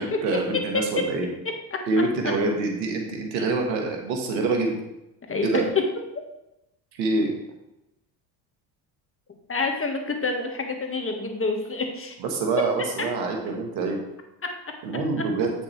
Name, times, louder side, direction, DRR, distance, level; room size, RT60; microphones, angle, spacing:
voice 1, 0.0-1.3 1.9-4.7 5.4-5.6 7.0-7.3 12.2-14.0 14.8-15.5, right 3 dB, 85° right, 2 dB, 1.6 m, -25 dB
voice 2, 0.7-1.0 1.7-1.8 2.2-2.3 5.3-5.6 9.5-12.1 14.4-14.5, left 3 dB, 25° left, 3 dB, 1.5 m, -28 dB
8.3 x 6.2 x 3.2 m, 0.89 s
hypercardioid pair, 70°, 50 cm